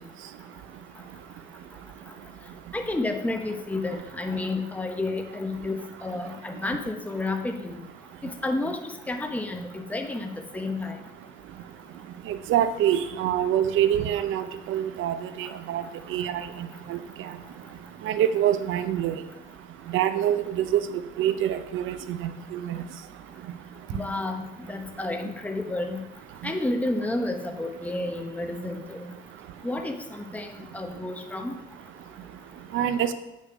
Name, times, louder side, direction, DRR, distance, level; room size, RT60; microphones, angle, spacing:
voice 1, 2.7-7.8 8.2-8.8 9.1-10.3 10.5-11.0 23.9-26.0 26.4-29.1 29.6-30.5 30.7-31.6, left 2 dB, 5° left, 4 dB, 0.8 m, -30 dB
voice 2, 12.3-15.8 16.1-16.4 16.9-17.0 18.1-19.1 19.9-20.8 21.2-22.8 32.7-33.1, right 10 dB, 85° right, 11 dB, 0.6 m, -25 dB
8.1 x 5.5 x 4.9 m, 0.97 s
cardioid pair, 90°, 20 cm